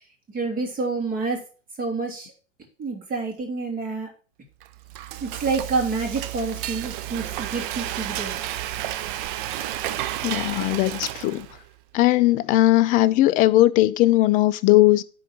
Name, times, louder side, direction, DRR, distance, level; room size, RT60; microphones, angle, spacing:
voice 1, 0.3-1.4 1.8-2.3 2.8-4.1 5.2-8.4, right 4 dB, 25° right, 2.9 m, -28 dB
Frying (food), 4.6-11.7, right 13 dB, 45° right, 0.8 m, -31 dB
voice 2, 10.2-11.5 11.9-15.0, left 16 dB, 25° left, 0.4 m, -18 dB
9.9 x 4.0 x 7.2 m
hypercardioid pair, 110°, 37 cm